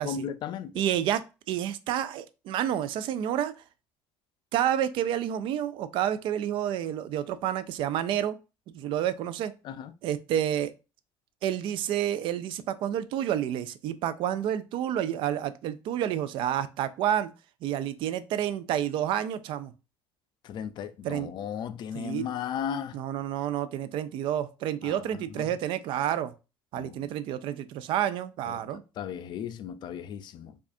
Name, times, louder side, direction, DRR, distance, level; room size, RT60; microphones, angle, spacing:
voice 1, 0.0-0.7 9.6-9.9 20.4-23.0 24.8-25.0 25.4-25.5 26.8-27.0 28.5-28.6 29.0-30.5, left 8 dB, 60° left, 0.4 m, -35 dB
voice 2, 0.7-3.5 4.5-8.4 8.7-9.5 10.0-10.7 11.4-17.3 17.6-19.7 21.0-21.3 21.9-22.3 22.9-26.3 26.7-28.8, right 10 dB, 70° right, 0.4 m, -29 dB
4.7 x 2.4 x 2.6 m
cardioid pair, 100°, 9 cm